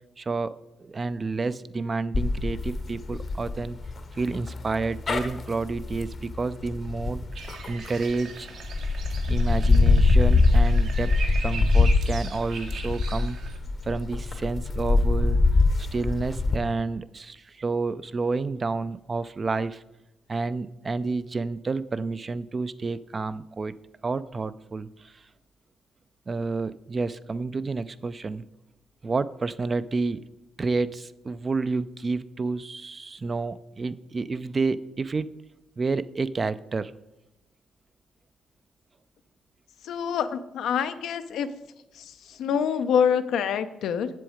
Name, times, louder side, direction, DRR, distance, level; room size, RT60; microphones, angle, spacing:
voice 1, 0.2-3.8 4.1-8.5 9.3-11.1 11.4-13.4 13.8-15.4 15.9-19.8 20.3-23.7 24.0-25.2 26.3-28.4 29.0-30.2 30.6-35.3 35.8-36.9, right 3 dB, 35° right, 14 dB, 0.4 m, -30 dB
sound 1, 2.1-8.1 8.6-16.6, left 3 dB, 45° left, 0.8 m, -23 dB
sound 2, 7.3-13.6, right 4 dB, 65° right, 1.2 m, -40 dB
voice 2, 39.8-41.5 42.0-44.1, left 7 dB, 75° left, 10 dB, 0.6 m, -26 dB
7.6 x 7.0 x 5.0 m, 0.92 s
cardioid pair, 80°, 0 cm